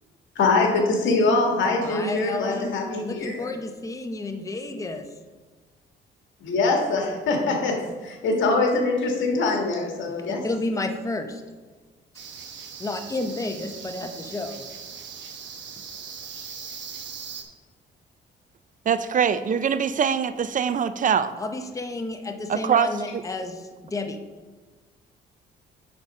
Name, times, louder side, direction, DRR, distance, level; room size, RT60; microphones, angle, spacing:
voice 1, 0.3-3.5 6.4-10.4, left 3 dB, 75° left, 1 dB, 1.6 m, -23 dB
voice 2, 1.8-5.1 10.1-11.4 12.8-14.6 21.4-24.2, left 2 dB, 15° left, 6 dB, 0.7 m, -31 dB
sound 1, 12.1-17.4, right 6 dB, 65° right, 1.0 m, -40 dB
voice 3, 18.9-21.4 22.5-23.2, right 7 dB, 40° right, 13 dB, 0.4 m, -23 dB
9.7 x 4.0 x 5.4 m, 1.3 s
cardioid pair, 90°, 20 cm